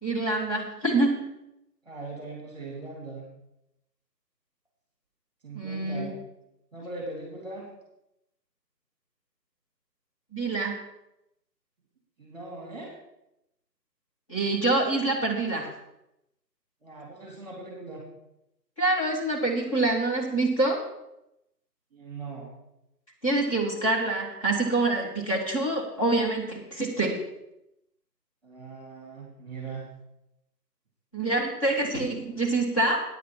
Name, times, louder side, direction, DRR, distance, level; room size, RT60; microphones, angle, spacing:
voice 1, 0.0-1.2 5.5-6.1 10.3-10.7 14.3-15.7 18.8-20.8 23.2-27.2 31.1-33.0, right 2 dB, 20° left, -5 dB, 1.7 m, -26 dB
voice 2, 1.8-3.2 5.4-6.1 6.7-7.7 12.2-12.9 16.8-18.0 21.9-22.5 28.4-29.9, right 3 dB, 25° right, -2 dB, 2.5 m, -40 dB
9.4 x 8.0 x 5.9 m, 0.85 s
figure-of-eight pair, 160°, 50 cm